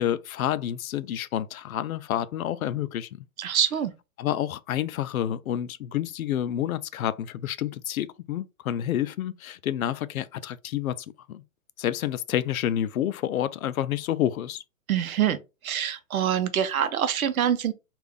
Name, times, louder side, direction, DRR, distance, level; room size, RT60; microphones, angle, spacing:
voice 1, 0.0-3.3 4.2-11.4 11.8-14.6, left 11 dB, 90° left, 0.5 m, -29 dB
voice 2, 3.4-3.9 14.9-15.4 15.6-17.7, right 9 dB, 90° right, 0.8 m, -25 dB
3.6 x 2.5 x 3.3 m
hypercardioid pair, 170°, 41 cm